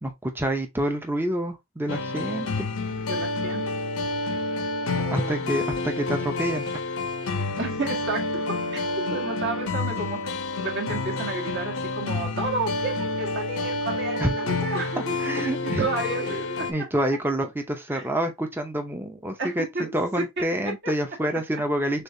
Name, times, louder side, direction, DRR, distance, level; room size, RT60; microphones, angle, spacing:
voice 1, 0.0-2.7 5.1-6.8 14.2-14.3 15.2-15.9 16.7-22.0, right 1 dB, 10° right, 0.6 m, -27 dB
sound 1, 1.9-16.7, left 3 dB, 80° left, 0.8 m, -29 dB
voice 2, 2.9-3.6 4.9-5.5 7.6-8.4 8.7-8.8 9.1-15.1 15.6-16.7 17.9-18.0 19.4-20.2 20.8-20.9, right 3 dB, 55° right, 1.5 m, -32 dB
6.6 x 2.5 x 2.6 m
head